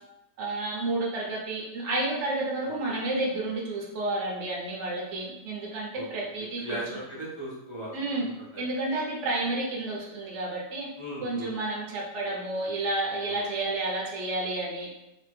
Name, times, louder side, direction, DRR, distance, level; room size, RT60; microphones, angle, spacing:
voice 1, 0.4-6.8 7.9-8.3 8.6-10.9 11.2-14.9, right 2 dB, 55° right, -2 dB, 0.8 m, -30 dB
voice 2, 5.9-6.3 6.6-8.6 11.0-11.6 13.3-13.4, right 1 dB, 30° right, -9 dB, 0.5 m, -38 dB
3.1 x 2.1 x 3.2 m, 0.91 s
omnidirectional pair, 1.8 m